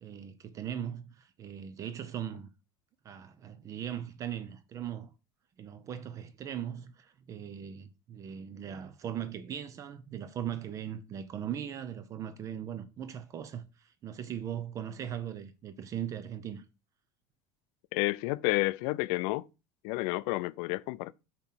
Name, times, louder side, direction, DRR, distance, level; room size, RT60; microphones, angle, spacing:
voice 1, 0.0-2.5 3.0-5.1 5.6-16.7, right 9 dB, 30° right, 0.5 m, -39 dB
voice 2, 17.9-19.5 19.8-21.1, left 21 dB, 65° left, 0.4 m, -30 dB
7.3 x 3.0 x 5.7 m
cardioid pair, 155°, 11 cm